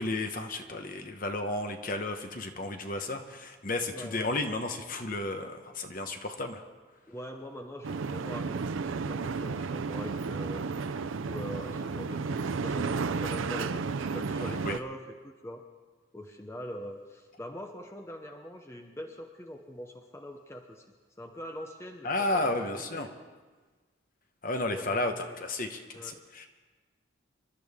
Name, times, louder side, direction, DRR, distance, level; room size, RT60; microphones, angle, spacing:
voice 1, 0.0-6.6 14.7-14.8 22.0-23.1 24.4-25.1 25.4-26.5, left 2 dB, 45° left, 6 dB, 1.1 m, -32 dB
voice 2, 3.8-4.3 7.1-8.6 8.8-10.8 11.3-15.6 16.1-20.8 21.2-22.5 22.9-23.1 24.7-25.4 25.9-26.2, equal, 15° left, 3 dB, 0.8 m, -43 dB
sound 1, 7.8-14.8, right 4 dB, 85° right, 0.5 m, -32 dB
26.5 x 12.0 x 3.6 m, 1.4 s
head